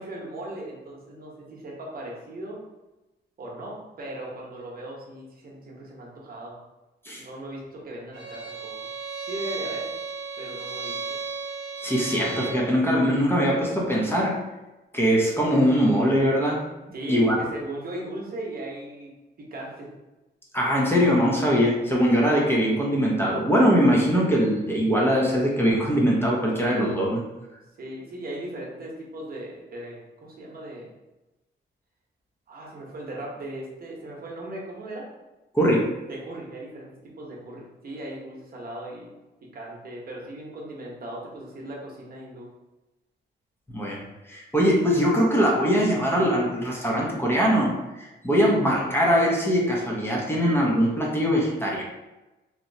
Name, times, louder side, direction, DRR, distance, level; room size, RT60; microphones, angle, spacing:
voice 1, 0.0-2.6 3.4-6.6 7.1-8.7 9.3-9.9 10.4-11.2 16.9-19.1 19.4-19.9 27.8-30.9 32.5-35.1 36.1-39.1 39.4-42.5, right 1 dB, 50° right, -3 dB, 0.9 m, -38 dB
Bowed string instrument, 8.1-12.7, right 5 dB, 80° right, 1.0 m, -34 dB
voice 2, 11.8-14.4 14.9-16.6 17.1-17.4 20.5-27.2 35.5-35.9 43.7-51.8, equal, 10° left, -4 dB, 0.7 m, -22 dB
3.0 x 2.8 x 2.7 m, 1.0 s
cardioid pair, 110°, 19 cm